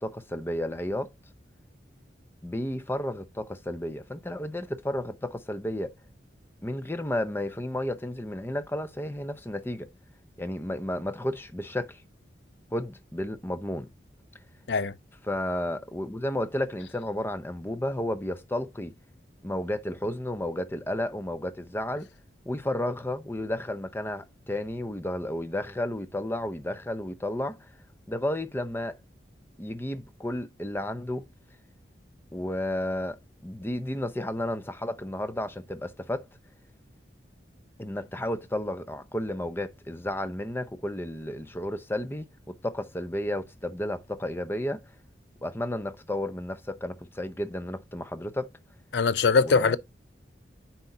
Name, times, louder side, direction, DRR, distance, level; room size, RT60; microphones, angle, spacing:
voice 1, 0.0-1.1 2.4-5.9 6.6-9.9 10.4-12.0 12.7-13.9 15.3-18.9 19.4-22.1 22.5-27.7 28.1-29.0 29.6-31.2 32.3-33.2 33.4-36.3 37.8-44.8 45.4-48.5 49.4-49.8, left 1 dB, 10° left, 0.6 m, -32 dB
voice 2, 48.9-49.8, left 4 dB, 70° left, 0.6 m, -22 dB
9.5 x 4.2 x 2.7 m
head